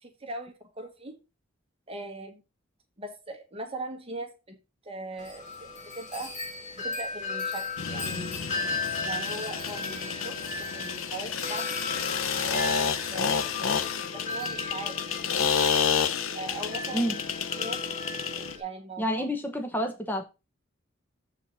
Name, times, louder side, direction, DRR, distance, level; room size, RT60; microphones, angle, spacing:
voice 1, 0.0-1.2 1.9-2.4 3.0-4.6 4.8-5.4 5.9-6.3 6.8-8.4 9.0-11.8 12.4-13.5 14.1-15.7 16.3-17.2 17.6-17.8 18.3-19.2, right 2 dB, 30° right, 1.3 m, -40 dB
Wind chime, 5.2-18.6, left 3 dB, 35° left, 2.0 m, -36 dB
sound 1, 7.8-18.6, left 6 dB, 80° left, 0.7 m, -30 dB
voice 2, 19.0-20.2, equal, 10° left, 1.1 m, -29 dB
7.3 x 4.6 x 5.5 m
head